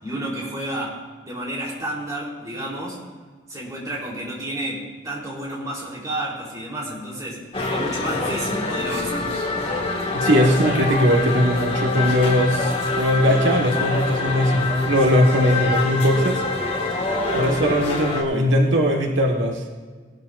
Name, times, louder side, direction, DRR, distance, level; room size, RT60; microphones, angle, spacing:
voice 1, 0.0-3.0 3.5-9.3, right 1 dB, 20° right, -4 dB, 3.5 m, -31 dB
sound 1, 7.5-18.2, left 3 dB, 30° left, 1.8 m, -25 dB
voice 2, 10.1-16.4 17.3-19.6, equal, 90° right, 1 dB, 1.5 m, -19 dB
19.0 x 12.5 x 2.5 m, 1.5 s
head